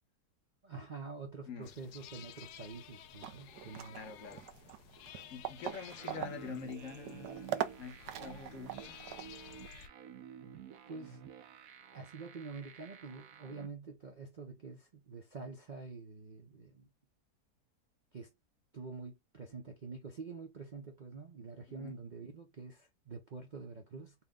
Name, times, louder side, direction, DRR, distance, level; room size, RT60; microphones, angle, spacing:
voice 1, 0.6-4.0 10.9-11.2 11.9-16.9 18.1-18.3 18.7-24.1, right 4 dB, 45° right, 0.6 m, -47 dB
sound 1, 1.6-9.9, left 10 dB, 80° left, 1.1 m, -54 dB
sound 2, 3.2-9.4, right 12 dB, 90° right, 1.2 m, -42 dB
voice 2, 4.0-4.4 5.3-9.0 21.7-21.9, left 6 dB, 55° left, 1.3 m, -46 dB
sound 3, 5.7-13.7, right 8 dB, 65° right, 1.0 m, -51 dB
4.4 x 2.2 x 3.6 m
omnidirectional pair, 1.7 m